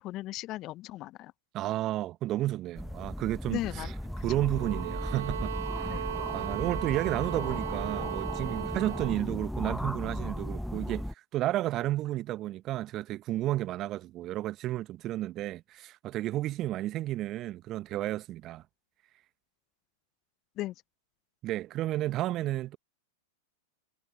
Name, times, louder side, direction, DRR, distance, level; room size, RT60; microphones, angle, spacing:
voice 1, 0.0-1.3 3.5-3.9 5.9-6.2 20.6-20.7, left 16 dB, 40° left, 1.1 m, -37 dB
voice 2, 1.5-3.9 4.2-5.5 5.8-6.1 6.3-18.6 21.4-22.8, right 15 dB, 35° right, 1.1 m, -32 dB
sound 1, 2.8-11.1, equal, ahead, 1.0 m, -36 dB
sound 2, 4.5-9.2, right 12 dB, 65° right, 4.4 m, -37 dB
figure-of-eight pair, 95°, 0 cm